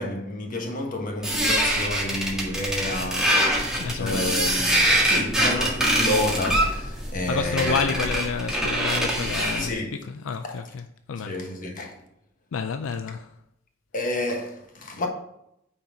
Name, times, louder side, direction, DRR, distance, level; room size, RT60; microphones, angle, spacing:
voice 1, 0.0-7.8 9.6-10.0 10.4-10.5 11.2-12.0 13.9-15.1, left 1 dB, 45° left, 1.4 m, -30 dB
sound 1, 1.2-9.7, right 1 dB, 5° right, 1.8 m, -24 dB
voice 2, 3.8-4.7 7.3-11.4 12.5-13.3, left 6 dB, 80° left, 0.4 m, -30 dB
9.2 x 4.4 x 5.0 m
head